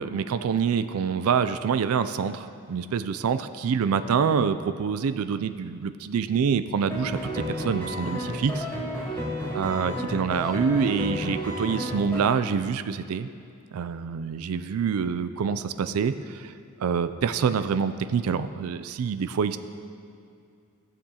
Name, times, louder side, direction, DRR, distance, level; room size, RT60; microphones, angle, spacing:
voice 1, 0.0-8.6 9.5-13.3 13.7-16.5 16.8-19.6, right 6 dB, 75° right, 12 dB, 0.4 m, -26 dB
sound 1, 6.9-12.2, equal, 5° left, 1.9 m, -32 dB
16.0 x 6.8 x 2.9 m, 2.4 s
head